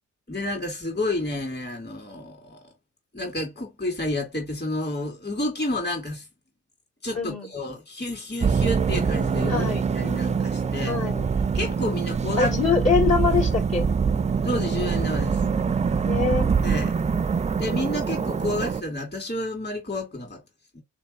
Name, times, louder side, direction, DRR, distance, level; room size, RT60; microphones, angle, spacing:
voice 1, 0.3-2.7 3.1-6.3 7.0-9.7 9.9-11.0 11.5-12.5 14.4-15.4 16.6-16.9 17.5-20.4 20.7-20.8, left 1 dB, 35° left, 2.2 m, -30 dB
voice 2, 7.2-7.5 9.5-9.8 10.8-11.3 12.4-13.9 16.0-16.5, left 5 dB, 60° left, 2.2 m, -24 dB
sound 1, 8.4-18.8, right 6 dB, 25° right, 0.4 m, -24 dB
3.7 x 3.4 x 4.2 m
cardioid pair, 80°, 30 cm